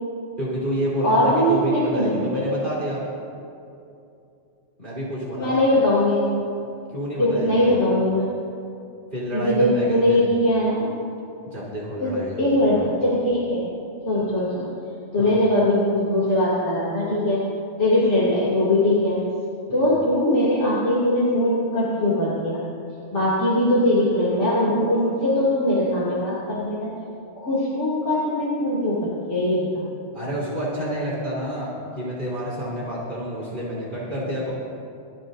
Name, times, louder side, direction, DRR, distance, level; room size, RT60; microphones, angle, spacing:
voice 1, 0.4-3.0 4.8-5.6 6.9-7.8 9.1-10.2 11.5-12.4 12.7-12.9 15.2-15.4 19.7-19.9 30.1-34.5, right 1 dB, 40° right, -8 dB, 3.7 m, -29 dB
voice 2, 1.0-2.6 5.4-6.2 7.2-8.3 9.3-10.9 12.0-13.7 14.0-14.7 15.1-17.4 17.8-19.2 19.7-22.6 23.1-26.9 27.4-29.8, left 1 dB, 70° left, -9 dB, 3.1 m, -21 dB
23.5 x 13.5 x 2.7 m, 2.6 s
omnidirectional pair, 1.2 m